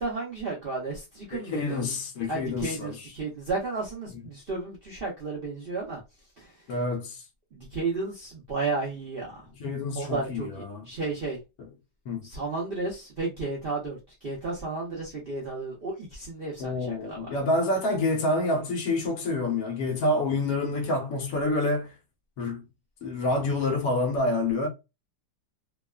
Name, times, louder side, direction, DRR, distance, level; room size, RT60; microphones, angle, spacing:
voice 1, 0.0-1.9 2.3-6.0 6.4-6.7 7.5-9.5 10.0-11.4 12.2-17.3, right 3 dB, 65° right, 0.5 m, -33 dB
voice 2, 1.3-2.9 6.7-7.2 9.6-10.8 12.1-12.3 16.6-21.9 22.4-22.6 23.0-24.7, left 2 dB, 70° left, 1.0 m, -27 dB
2.7 x 2.3 x 2.2 m
omnidirectional pair, 1.8 m